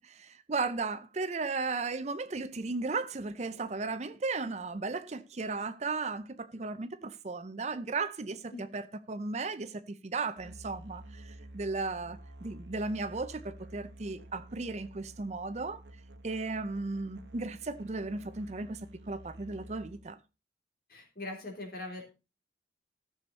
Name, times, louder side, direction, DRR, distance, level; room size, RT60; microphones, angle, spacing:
voice 1, 0.0-15.8 16.2-18.8 19.1-20.2, right 3 dB, 40° right, 0.6 m, -35 dB
Musical instrument, 10.4-20.2, right 1 dB, 80° right, 1.1 m, -51 dB
voice 2, 20.9-22.0, left 2 dB, 55° left, 3.8 m, -41 dB
14.0 x 7.0 x 4.0 m
head